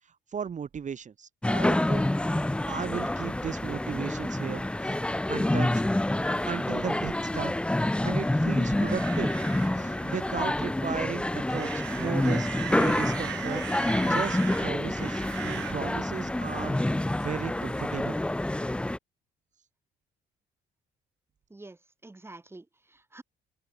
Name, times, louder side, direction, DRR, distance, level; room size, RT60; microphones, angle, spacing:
voice 1, 0.3-2.0 2.7-5.0 5.3-5.8 6.5-7.5 8.0-9.3 9.8-13.6 14.1-18.2, right 7 dB, 40° right, 3.3 m, -35 dB
sound 1, 1.4-19.0, left 1 dB, 5° left, 0.7 m, -28 dB
sound 2, 8.8-16.0, right 15 dB, 75° right, 1.2 m, -40 dB
voice 2, 22.0-23.2, right 2 dB, 15° right, 3.9 m, -47 dB
open air
cardioid pair, 100°, 19 cm